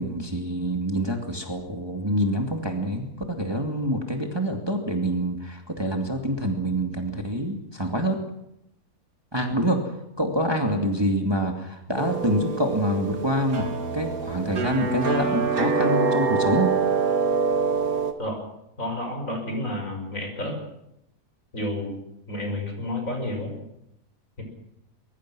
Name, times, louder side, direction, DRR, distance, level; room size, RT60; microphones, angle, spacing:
voice 1, 0.0-8.2 9.3-13.6 13.9-16.7, equal, 15° right, 3 dB, 2.3 m, -26 dB
sound 1, 12.0-18.1, right 5 dB, 65° right, 2.4 m, -25 dB
voice 2, 18.8-20.6 21.5-22.0 22.3-23.5 24.4-24.5, left 1 dB, 55° left, 3 dB, 6.1 m, -30 dB
23.0 x 21.5 x 6.2 m, 0.81 s
omnidirectional pair, 1.7 m